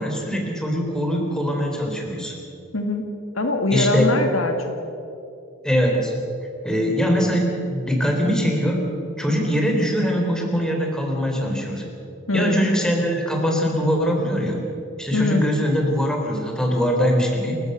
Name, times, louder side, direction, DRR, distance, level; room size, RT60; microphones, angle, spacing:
voice 1, 0.0-2.4 3.7-4.1 5.6-6.1 6.6-8.9 9.2-11.9 12.3-14.6 15.0-17.6, equal, 5° left, 1 dB, 3.9 m, -22 dB
voice 2, 2.7-3.1 3.3-4.5 12.3-12.6 15.1-15.4, left 2 dB, 80° left, 5 dB, 2.2 m, -22 dB
29.0 x 15.0 x 6.8 m, 2.7 s
head